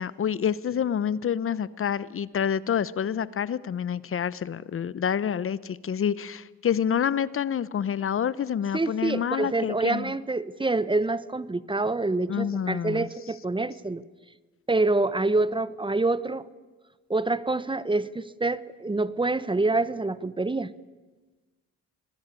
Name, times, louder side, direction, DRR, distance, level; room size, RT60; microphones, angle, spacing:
voice 1, 0.0-10.1 12.3-13.1, left 8 dB, 45° left, 19 dB, 0.8 m, -28 dB
voice 2, 8.7-14.0 14.7-16.5 17.1-20.7, right 2 dB, 15° right, 17 dB, 1.0 m, -26 dB
25.0 x 20.0 x 9.8 m, 1.2 s
cardioid pair, 90°, 30 cm